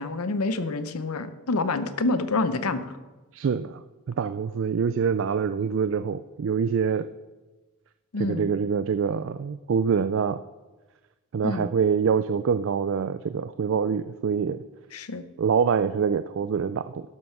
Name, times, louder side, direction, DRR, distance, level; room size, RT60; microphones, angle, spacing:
voice 1, 0.0-3.0 8.1-8.5 11.4-11.7 14.9-15.3, left 3 dB, 90° left, 12 dB, 0.8 m, -27 dB
voice 2, 3.3-7.1 8.2-10.4 11.3-14.6 15.4-17.0, right 6 dB, 60° right, 12 dB, 0.3 m, -25 dB
12.0 x 7.7 x 6.0 m, 1.2 s
head